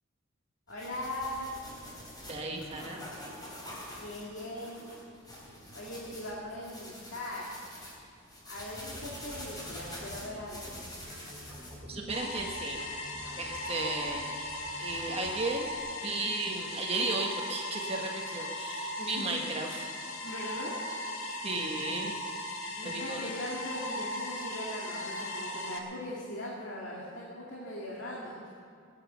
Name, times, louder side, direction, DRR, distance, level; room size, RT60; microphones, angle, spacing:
voice 1, 0.7-1.5 4.0-4.8 5.7-7.5 8.4-10.8 19.0-19.4 20.2-20.8 22.7-28.5, left 1 dB, 65° left, -5 dB, 2.3 m, -40 dB
sound 1, 0.7-11.8, left 1 dB, 20° left, 3.8 m, -46 dB
voice 2, 2.3-3.1 11.9-12.8 13.4-14.3 14.8-15.7 16.0-19.9 21.4-22.2 22.8-23.3, right 3 dB, 30° right, 1 dB, 1.3 m, -34 dB
sound 2, 8.9-15.8, equal, 10° right, 4.6 m, -49 dB
sound 3, 12.1-25.8, left 1 dB, 85° left, 1.9 m, -38 dB
20.5 x 9.2 x 6.9 m, 2.5 s
head